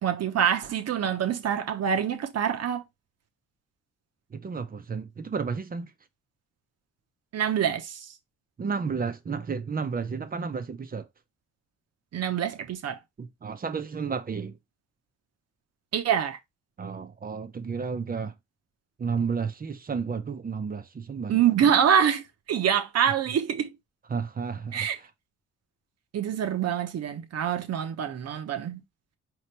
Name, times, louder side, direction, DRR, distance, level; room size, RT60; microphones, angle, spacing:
voice 1, 0.0-2.8 7.3-8.1 12.1-13.0 15.9-16.4 21.3-23.7 24.7-25.0 26.1-28.8, right 8 dB, 55° right, 0.9 m, -25 dB
voice 2, 4.3-5.9 8.6-11.1 13.2-14.6 16.8-18.3 19.0-21.4 24.1-24.9, right 5 dB, 30° right, 0.7 m, -32 dB
4.9 x 3.0 x 3.2 m
cardioid pair, 90°, 30 cm